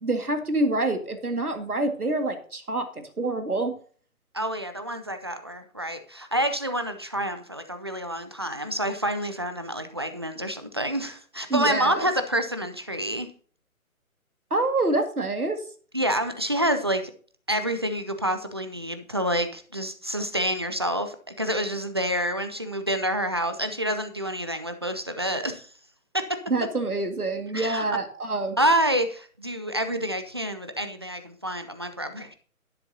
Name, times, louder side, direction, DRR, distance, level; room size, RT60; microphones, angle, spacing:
voice 1, 0.0-3.7 11.5-12.1 14.5-15.6 26.5-28.6, right 2 dB, 85° right, 6 dB, 2.1 m, -26 dB
voice 2, 4.3-13.3 15.9-17.1 17.5-25.7 26.1-26.4 27.5-27.8 28.6-32.3, right 1 dB, 20° right, 8 dB, 0.5 m, -28 dB
11.5 x 10.0 x 2.8 m, 0.44 s
figure-of-eight pair, 140°, 43 cm